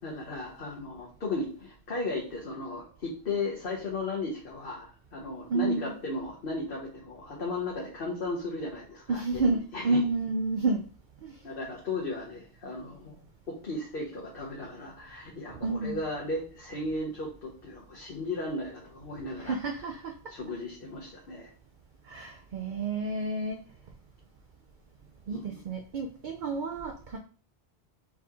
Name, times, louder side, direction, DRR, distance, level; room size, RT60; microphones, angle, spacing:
voice 1, 0.0-10.0 11.4-19.6 20.3-21.5 25.3-25.6, left 2 dB, 60° left, -3 dB, 1.1 m, -36 dB
voice 2, 5.5-5.9 9.1-10.8 11.2-11.4 15.5-16.0 19.4-20.1 22.0-23.6 25.3-27.2, right 3 dB, 55° right, 3 dB, 0.7 m, -30 dB
4.8 x 2.9 x 3.6 m, 0.41 s
omnidirectional pair, 1.1 m